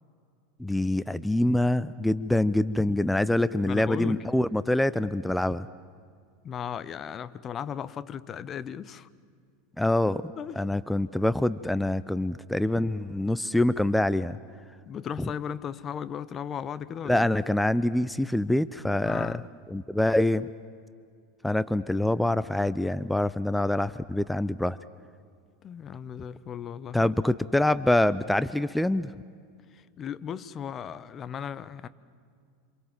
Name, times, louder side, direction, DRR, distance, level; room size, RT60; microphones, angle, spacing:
voice 1, 0.6-5.7 9.8-10.2 10.6-14.4 15.2-15.3 17.0-19.3 19.7-20.5 21.4-24.8 26.9-29.1, left 1 dB, 5° left, 0.6 m, -25 dB
voice 2, 3.6-4.2 6.4-9.1 10.4-10.6 14.9-17.3 19.0-19.5 25.6-27.1 29.7-31.9, left 8 dB, 30° left, 1.0 m, -36 dB
27.5 x 27.0 x 7.5 m
figure-of-eight pair, 85°, 0 cm